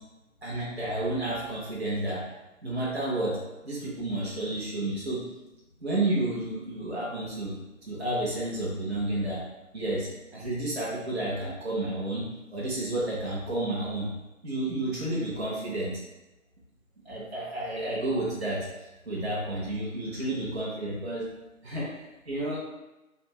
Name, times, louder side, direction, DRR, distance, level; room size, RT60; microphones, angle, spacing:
voice 1, 0.4-2.2 2.6-3.4 3.6-5.2 5.8-7.5 7.9-9.4 9.7-14.1 14.4-15.9 17.1-18.7 19.1-21.3 21.6-22.6, right 1 dB, 50° right, -6 dB, 0.8 m, -31 dB
3.4 x 2.3 x 2.9 m, 1.0 s
figure-of-eight pair, 175°, 42 cm